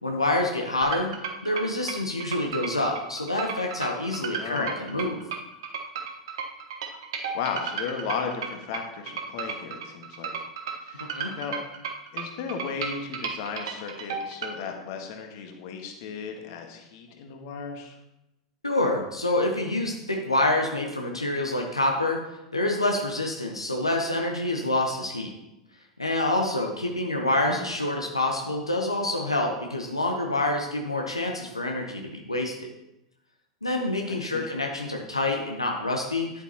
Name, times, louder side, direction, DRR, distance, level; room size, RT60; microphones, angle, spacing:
voice 1, 0.0-1.1 1.4-5.2 11.1-11.4 18.6-22.2 22.5-25.3 26.0-32.5 33.6-36.4, left 2 dB, 85° left, 1 dB, 1.0 m, -27 dB
sound 1, 0.8-14.5, right 6 dB, 65° right, 1.3 m, -34 dB
voice 2, 4.4-4.8 7.3-10.3 10.8-11.1 11.4-11.5 12.1-17.9 27.4-27.6 34.1-34.5, left 6 dB, 55° left, 3 dB, 1.5 m, -35 dB
10.5 x 8.7 x 3.0 m, 0.93 s
figure-of-eight pair, 90°, 3 cm